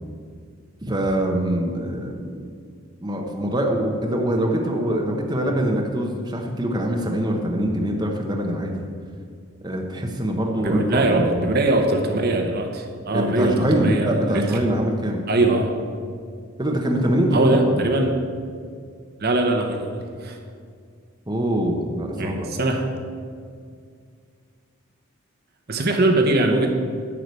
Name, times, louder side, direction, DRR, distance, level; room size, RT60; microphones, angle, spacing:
voice 1, 0.8-2.4 3.0-8.8 9.6-11.5 13.1-15.2 16.6-17.9 21.3-22.6, equal, 20° right, 1 dB, 0.9 m, -24 dB
voice 2, 10.6-14.6 15.3-15.7 17.3-18.1 19.2-20.4 22.2-22.9 25.7-26.7, right 2 dB, 45° right, 4 dB, 0.9 m, -21 dB
11.0 x 4.9 x 8.2 m, 2.1 s
head